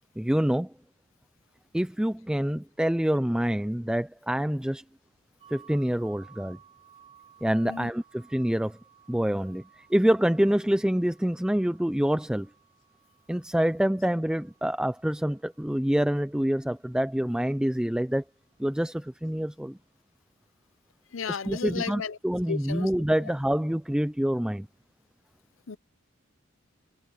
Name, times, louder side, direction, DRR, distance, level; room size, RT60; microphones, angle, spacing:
voice 1, 0.2-0.7 1.7-4.8 5.5-6.6 7.4-8.8 9.1-12.5 13.3-18.2 18.6-19.8 21.3-24.7, equal, 5° right, 0.4 m, -26 dB
sound 1, 5.4-17.1, right 8 dB, 30° right, 5.6 m, -58 dB
voice 2, 21.1-22.2 22.5-22.9 23.2-23.3 25.7-25.8, left 5 dB, 65° left, 0.7 m, -34 dB
head